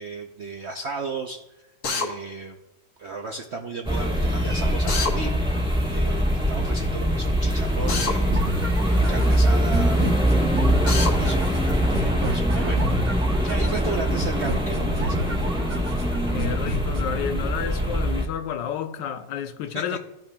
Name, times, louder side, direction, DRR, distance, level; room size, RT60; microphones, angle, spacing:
voice 1, 0.0-1.4 1.9-2.6 3.0-10.0 11.0-12.9 13.4-15.2 19.7-19.8, right 3 dB, 70° right, 0.6 m, -35 dB
Drill, 1.8-2.1 4.9-5.1 7.9-8.2 10.9-11.1, left 4 dB, 60° left, 1.8 m, -25 dB
sound 1, 3.8-18.2, equal, 5° right, 1.1 m, -23 dB
sound 2, 8.3-17.3, right 2 dB, 40° right, 0.9 m, -31 dB
voice 2, 16.3-20.0, left 8 dB, 80° left, 1.3 m, -30 dB
15.5 x 5.8 x 2.3 m
omnidirectional pair, 1.9 m